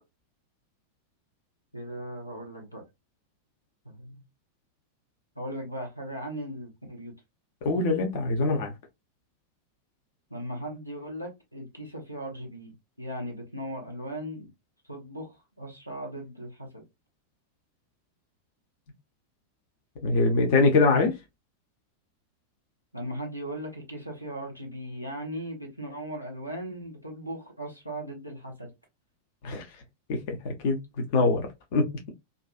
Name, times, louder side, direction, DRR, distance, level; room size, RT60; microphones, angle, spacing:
voice 1, 1.7-2.8 3.8-4.2 5.4-7.1 10.3-14.5 14.9-16.8 22.9-28.7, equal, 90° left, 0.8 m, -38 dB
voice 2, 7.6-8.7 20.0-21.2 29.4-29.6 30.1-30.8 31.1-31.5 31.7-31.9, left 3 dB, 50° left, 0.7 m, -23 dB
2.5 x 2.3 x 2.3 m
figure-of-eight pair, 90°, 0 cm